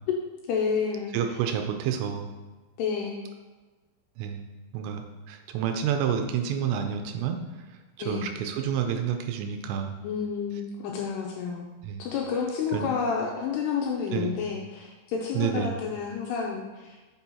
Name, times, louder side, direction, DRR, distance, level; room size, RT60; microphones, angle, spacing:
voice 1, 0.5-1.1 2.8-3.2 8.0-8.3 10.0-11.6 12.0-17.0, left 6 dB, 85° left, 0 dB, 2.4 m, -30 dB
voice 2, 1.1-2.3 4.2-4.4 4.7-7.5 8.0-10.0 11.8-12.0 12.7-12.9 14.1-14.4 15.3-15.8, right 8 dB, 80° right, 5 dB, 2.6 m, -29 dB
8.2 x 6.1 x 2.8 m, 1.2 s
omnidirectional pair, 5.3 m